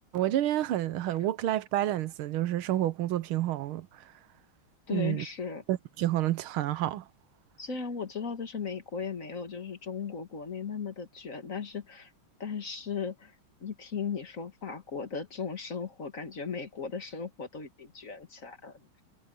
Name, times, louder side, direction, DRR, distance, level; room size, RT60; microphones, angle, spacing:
voice 1, 0.1-3.9 4.9-5.2 5.7-7.0, right 13 dB, 90° right, 1.7 m, -29 dB
voice 2, 4.9-5.6 7.6-12.1 12.4-13.3 13.6-18.8, left 6 dB, 40° left, 1.9 m, -37 dB
omnidirectional pair, 2.2 m